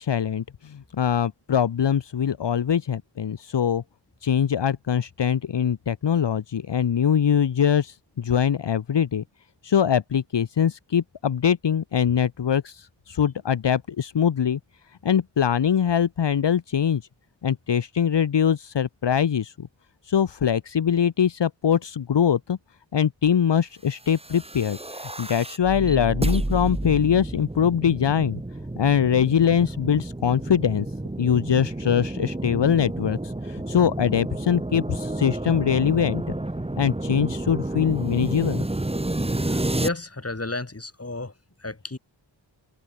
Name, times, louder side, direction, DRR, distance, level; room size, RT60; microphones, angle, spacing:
voice 1, 0.0-3.8 4.2-9.2 9.6-14.6 15.0-17.0 17.4-19.7 20.0-22.6 22.9-28.4 28.8-30.9 31.2-36.3 36.8-38.7, left 8 dB, 65° left, 0.9 m, -23 dB
sound 1, 24.1-39.9, right 1 dB, 15° right, 1.4 m, -30 dB
voice 2, 39.5-41.3 41.6-42.0, left 2 dB, 30° left, 4.2 m, -32 dB
wide cardioid pair, 70°, 46 cm